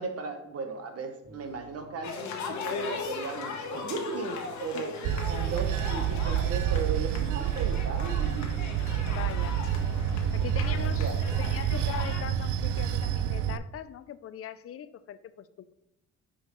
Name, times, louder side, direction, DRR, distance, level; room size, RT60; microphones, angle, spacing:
voice 1, 0.0-5.0 5.3-8.5 10.7-11.2, right 4 dB, 50° right, 1.2 m, -36 dB
sound 1, 1.2-7.4, left 4 dB, 30° right, 1.3 m, -56 dB
sound 2, 2.0-12.2, left 5 dB, 65° left, 1.1 m, -38 dB
Bell / Train, 5.0-13.6, right 9 dB, 80° right, 0.5 m, -28 dB
voice 2, 9.1-9.6 10.3-15.7, left 10 dB, 50° left, 0.5 m, -41 dB
5.7 x 5.5 x 3.1 m
cardioid pair, 90°, 30 cm